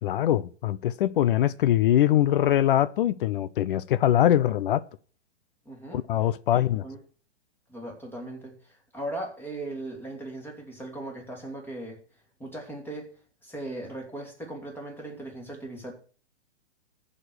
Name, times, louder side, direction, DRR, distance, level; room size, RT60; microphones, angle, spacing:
voice 1, 0.0-4.8 5.9-6.8, left 12 dB, 50° left, 0.5 m, -23 dB
voice 2, 5.6-6.0 6.5-7.0 7.7-12.0 12.4-13.1 13.4-15.9, right 1 dB, 5° left, 2.9 m, -38 dB
14.5 x 5.1 x 6.3 m
hypercardioid pair, 140°, 34 cm